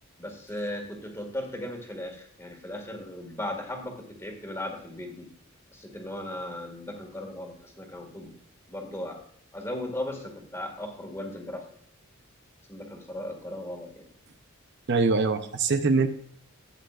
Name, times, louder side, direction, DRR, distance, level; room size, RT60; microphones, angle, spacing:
voice 1, 0.2-5.3 5.7-8.3 8.7-9.2 9.5-11.7 12.7-14.1, left 1 dB, 15° left, 3 dB, 1.9 m, -37 dB
voice 2, 14.9-16.1, right 4 dB, 55° right, 8 dB, 0.7 m, -23 dB
13.0 x 9.1 x 2.5 m, 0.63 s
head